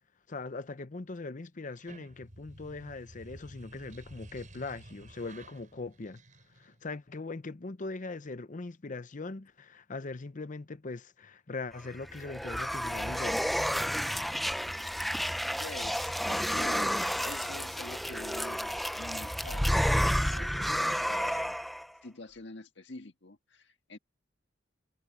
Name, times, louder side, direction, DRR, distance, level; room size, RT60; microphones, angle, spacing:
voice 1, 0.3-6.2 6.6-13.4, left 3 dB, 45° left, 0.7 m, -40 dB
sound 1, 1.6-6.9, right 1 dB, 45° right, 5.6 m, -52 dB
sound 2, 11.9-21.9, equal, ahead, 0.5 m, -31 dB
voice 2, 15.6-21.6 22.0-24.0, left 2 dB, 70° left, 1.8 m, -47 dB
head